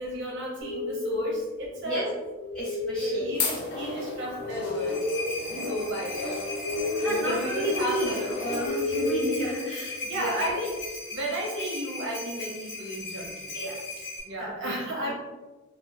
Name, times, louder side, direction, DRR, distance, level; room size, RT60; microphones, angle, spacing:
voice 1, 0.0-2.1 3.0-5.0 5.5-6.4 7.1-8.4 10.0-10.8 11.1-13.5 14.3-15.1, equal, 55° right, -3 dB, 0.6 m, -33 dB
sound 1, 0.6-10.3, left 2 dB, 25° left, 0.7 m, -33 dB
voice 2, 2.5-3.4 7.0-10.5 13.5-13.7 14.4-14.7 15.0-15.1, right 1 dB, 5° left, -11 dB, 1.1 m, -32 dB
sound 2, 2.8-8.7, left 3 dB, 50° left, 0.4 m, -35 dB
sound 3, 4.5-14.2, left 2 dB, 70° left, 1.0 m, -38 dB
2.8 x 2.2 x 2.3 m, 1.2 s
head